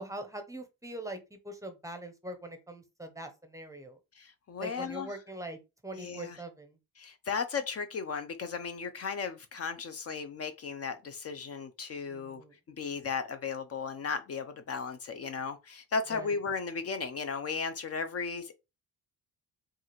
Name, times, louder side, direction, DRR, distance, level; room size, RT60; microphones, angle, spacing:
voice 1, 0.0-4.0 4.6-6.8 12.1-12.5 16.1-16.3, right 1 dB, 10° right, 0.6 m, -42 dB
voice 2, 4.2-5.1 5.9-6.4 7.0-18.5, left 5 dB, 40° left, 0.5 m, -35 dB
4.6 x 2.4 x 3.0 m
cardioid pair, 120°, 37 cm